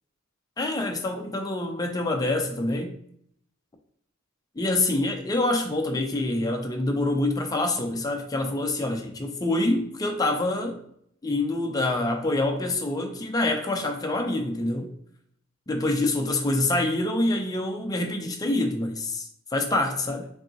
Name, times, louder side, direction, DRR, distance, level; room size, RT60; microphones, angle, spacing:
voice 1, 0.6-2.9 4.6-10.8 11.2-14.9 15.7-20.3, left 2 dB, 20° left, 0.5 m, -26 dB
5.2 x 2.7 x 2.8 m
head